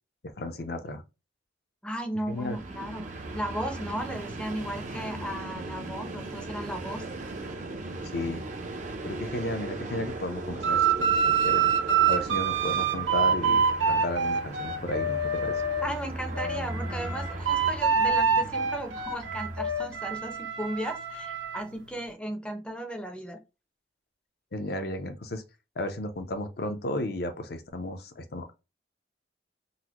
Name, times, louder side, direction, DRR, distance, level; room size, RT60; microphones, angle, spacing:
voice 1, 0.4-1.0 2.3-2.6 8.1-8.4 9.0-11.7 12.1-15.6 24.5-25.4 25.8-28.5, left 1 dB, 55° left, 0.6 m, -34 dB
voice 2, 1.8-7.0 15.8-23.4, right 1 dB, 5° left, 0.6 m, -35 dB
Train, 2.3-20.4, right 2 dB, 40° right, 0.5 m, -38 dB
sound 1, 10.6-15.9 16.3-21.6, right 5 dB, 90° right, 0.6 m, -26 dB
3.9 x 2.1 x 2.9 m
head